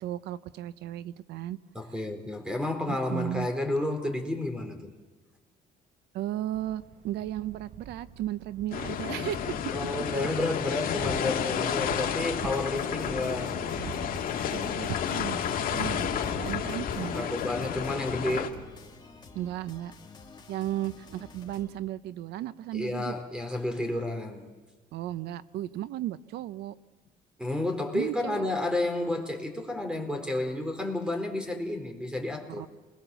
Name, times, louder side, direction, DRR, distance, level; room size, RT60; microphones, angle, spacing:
voice 1, 0.0-1.6 2.9-3.5 6.1-9.6 13.3-13.4 13.8-13.9 14.5-17.3 19.3-19.9 20.5-23.2 24.9-26.8 27.9-28.5 32.6-32.7, right 13 dB, 80° right, 15 dB, 0.8 m, -35 dB
voice 2, 1.7-4.9 9.7-13.6 17.0-18.5 22.7-24.5 27.4-32.7, left 1 dB, 5° right, 5 dB, 4.2 m, -31 dB
Thunder, 6.5-19.9, right 6 dB, 55° right, 1.5 m, -45 dB
sound 1, 8.7-18.5, left 9 dB, 55° left, 2.2 m, -31 dB
sound 2, 12.5-21.7, left 3 dB, 25° left, 2.5 m, -51 dB
28.0 x 21.5 x 7.1 m, 1.3 s
cardioid pair, 110°, 17 cm